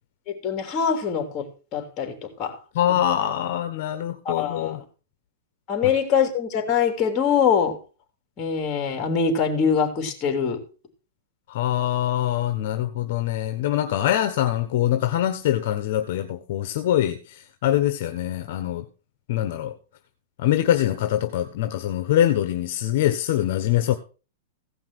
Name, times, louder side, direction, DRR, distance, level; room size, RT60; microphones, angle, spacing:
voice 1, 0.3-2.6 2.9-3.0 4.2-4.8 5.7-7.8 8.4-10.6, left 7 dB, 25° left, 5 dB, 3.2 m, -24 dB
voice 2, 2.7-4.8 11.5-18.9 19.3-19.7 20.4-23.9, left 12 dB, 50° left, 8 dB, 1.3 m, -24 dB
16.5 x 5.9 x 6.1 m, 0.35 s
supercardioid pair, 165°, 0 cm